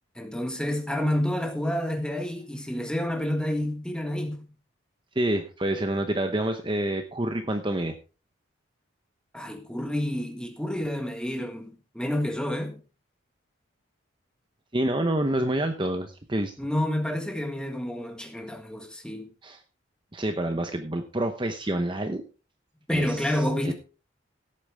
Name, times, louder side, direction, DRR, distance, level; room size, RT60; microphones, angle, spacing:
voice 1, 0.1-4.5 9.3-12.8 16.6-19.3 22.9-23.7, left 1 dB, 5° left, 1.6 m, -29 dB
voice 2, 5.1-7.9 14.7-16.6 19.4-19.6 20.1-22.2 22.9-23.7, right 1 dB, 25° right, 0.8 m, -28 dB
17.0 x 8.6 x 3.4 m
head